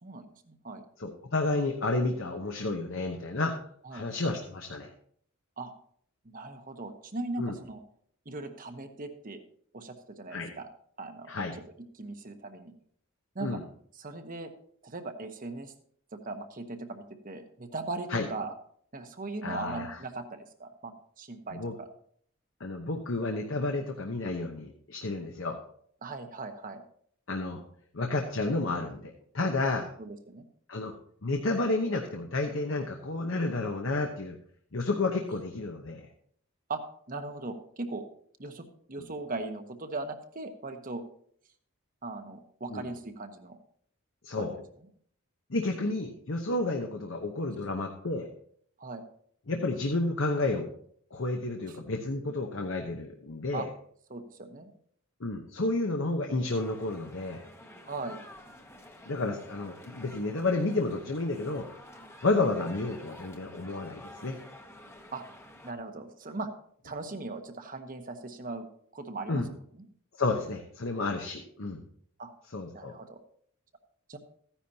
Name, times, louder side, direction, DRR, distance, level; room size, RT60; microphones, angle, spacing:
voice 1, 0.0-0.8 3.8-4.1 5.6-5.7 6.2-7.8 8.2-9.4 9.7-10.7 11.0-11.3 11.9-12.7 13.3-13.6 14.0-14.5 14.8-15.7 16.1-18.5 18.9-21.9 26.0-26.8 30.0-30.5 36.7-36.8 37.1-38.1 38.4-41.0 42.0-43.6 44.4-44.6 48.8-49.0 53.5-53.7 54.1-54.7 57.9-58.2 65.1-65.2 65.6-66.5 66.8-68.6 68.9-69.4 72.2-72.3 72.7-73.2 74.1-74.2, right 3 dB, 40° right, 7 dB, 1.1 m, -39 dB
voice 2, 1.0-3.5 3.9-4.9 7.4-7.5 10.3-10.5 11.3-11.5 13.4-13.6 18.1-18.3 19.4-20.0 21.5-21.7 22.6-25.6 27.3-27.6 27.9-29.9 30.7-30.9 31.2-34.4 34.7-36.1 42.7-42.9 44.2-44.6 45.5-48.3 49.5-50.7 51.1-53.7 55.2-57.4 59.1-61.8 62.2-64.4 69.3-69.5 70.2-71.8 72.5-73.0, left 2 dB, 65° left, 3 dB, 1.0 m, -31 dB
sound 1, 56.5-65.7, left 1 dB, 10° left, 1.0 m, -50 dB
14.5 x 10.0 x 2.9 m, 0.62 s
head